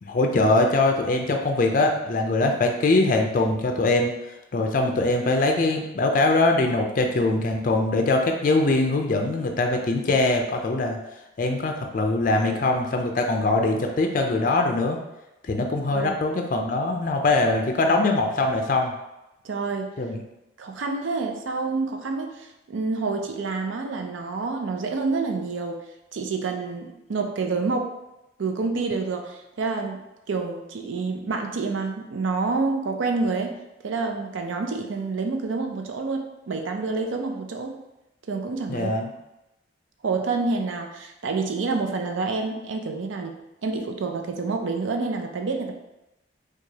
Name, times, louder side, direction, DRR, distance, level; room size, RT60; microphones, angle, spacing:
voice 1, 0.0-4.1 4.5-11.0 11.4-15.0 15.4-18.9 20.0-20.2 38.7-39.1, left 2 dB, 45° left, 3 dB, 0.4 m, -22 dB
voice 2, 15.8-16.2 19.4-19.9 20.6-25.8 26.1-27.9 28.4-33.6 33.8-37.8 38.3-38.9 40.0-43.3 43.6-45.7, right 4 dB, 85° right, 4 dB, 0.5 m, -28 dB
4.6 x 2.3 x 2.7 m, 0.94 s
head